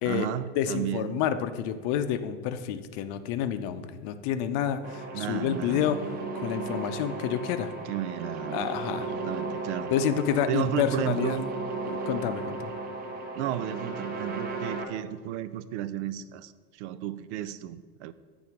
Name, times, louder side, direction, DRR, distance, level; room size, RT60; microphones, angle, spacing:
voice 1, 0.0-1.2 5.1-5.8 7.8-8.7 9.0-10.0 10.5-11.5 13.4-18.1, right 12 dB, 85° right, 14 dB, 0.5 m, -33 dB
voice 2, 0.6-6.1 6.3-7.7 8.5-9.1 9.9-11.4 11.9-12.7, left 9 dB, 55° left, 10 dB, 0.6 m, -29 dB
sound 1, 4.8-14.8, right 3 dB, 30° right, 0.7 m, -35 dB
8.3 x 3.9 x 5.8 m, 1.5 s
supercardioid pair, 140°, 34 cm